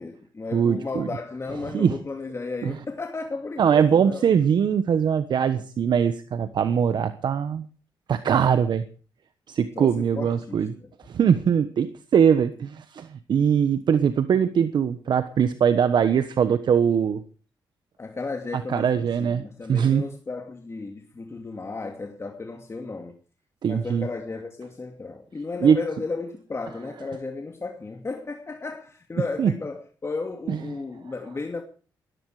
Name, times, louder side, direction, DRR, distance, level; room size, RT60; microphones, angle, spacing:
voice 1, 0.0-4.2 9.8-10.9 18.0-23.2 23.7-31.6, left 3 dB, 35° left, 2.6 m, -34 dB
voice 2, 0.5-1.1 1.7-2.0 2.6-2.7 3.6-7.6 8.1-8.8 9.5-10.7 11.1-17.2 18.7-19.4 19.7-20.0 23.6-24.1 25.6-25.8 29.4-29.5 30.5-30.6, right 7 dB, 65° right, 1.2 m, -21 dB
18.5 x 14.0 x 5.0 m
cardioid pair, 70°, 8 cm